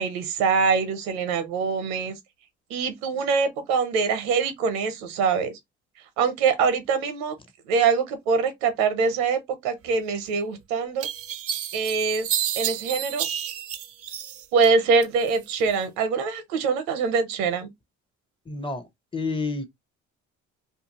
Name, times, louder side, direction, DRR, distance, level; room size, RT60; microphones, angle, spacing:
voice 1, 0.0-2.1 2.7-5.5 6.2-7.3 7.7-11.1 11.7-12.3 12.5-13.3 14.5-17.7, right 5 dB, 85° right, 0.7 m, -24 dB
sound 1, 10.3-10.4 11.0-14.7 15.0-15.8, right 10 dB, 50° right, 0.5 m, -30 dB
voice 2, 18.5-19.7, left 3 dB, 15° left, 0.6 m, -30 dB
2.5 x 2.3 x 2.8 m
supercardioid pair, 65°, 31 cm